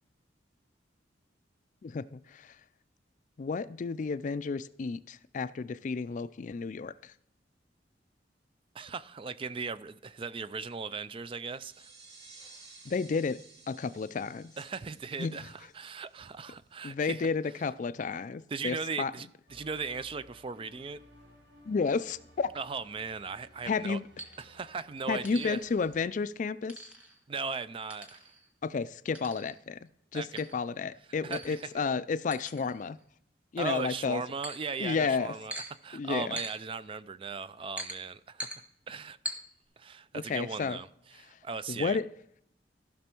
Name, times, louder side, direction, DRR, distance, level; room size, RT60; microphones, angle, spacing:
voice 1, 1.8-2.6 3.4-7.1 12.9-14.5 15.2-15.4 16.8-19.1 21.7-22.5 23.6-24.0 25.1-26.8 28.6-33.0 33.5-34.2 34.8-35.3 35.9-36.4 40.1-40.8 41.7-42.1, left 5 dB, 45° left, 0.3 m, -32 dB
voice 2, 8.7-11.9 14.6-17.3 18.5-21.0 22.5-24.0 24.4-25.6 27.3-28.3 30.1-30.4 31.2-31.6 33.6-35.5 35.8-38.5 38.9-39.4 39.8-40.9 41.2-42.0, right 5 dB, 30° right, 0.3 m, -38 dB
sound 1, 11.5-16.9, right 3 dB, 65° right, 2.1 m, -56 dB
sound 2, 19.5-26.0, equal, 85° right, 3.8 m, -58 dB
sound 3, 24.2-24.6 25.2-25.9 26.7-27.2 27.9-28.5 29.1-29.6 30.4-30.6 31.3-31.8 32.3-33.0 34.4-34.8 35.5-35.7 36.4-36.6 37.8-38.0 38.4-38.6 39.2-39.4, equal, 10° right, 1.4 m, -42 dB
14.5 x 6.2 x 4.4 m
head